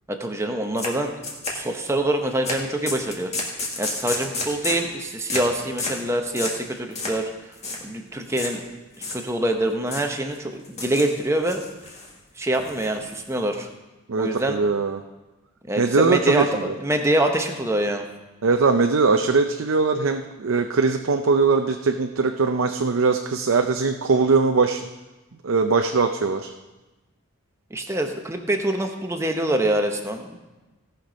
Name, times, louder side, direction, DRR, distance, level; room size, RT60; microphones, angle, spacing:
voice 1, 0.1-1.1 1.5-3.3 3.8-7.3 7.8-8.6 9.0-11.6 12.4-13.7 14.2-14.6 15.7-18.1 27.7-30.4, right 1 dB, 15° right, 4 dB, 0.8 m, -25 dB
sound 1, 0.8-0.9 1.2-1.9 2.4-2.6 2.9-4.9 5.3-5.5 5.8-6.0 6.4-6.6 7.0-7.2 7.5-7.8 8.4-8.5 8.9-9.5 9.9-10.1 10.6-11.1 11.4-12.1 12.5-13.3, left 3 dB, 30° left, 1.7 m, -30 dB
voice 2, 14.1-15.0 15.8-16.7 18.4-24.9 25.4-26.5, right 4 dB, 70° right, 5 dB, 0.5 m, -21 dB
17.0 x 5.9 x 5.1 m, 1.1 s
head